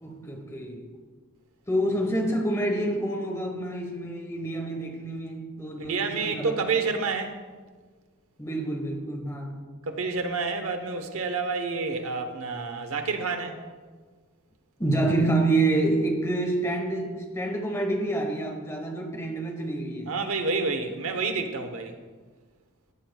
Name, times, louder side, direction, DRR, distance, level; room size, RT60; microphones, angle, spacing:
voice 1, 0.0-0.9 1.7-6.5 8.4-9.6 14.8-20.1, right 2 dB, 15° left, 2 dB, 1.1 m, -27 dB
voice 2, 5.8-7.4 9.8-13.6 20.1-21.9, right 4 dB, 90° right, 6 dB, 1.0 m, -29 dB
15.0 x 7.4 x 2.3 m, 1.4 s
head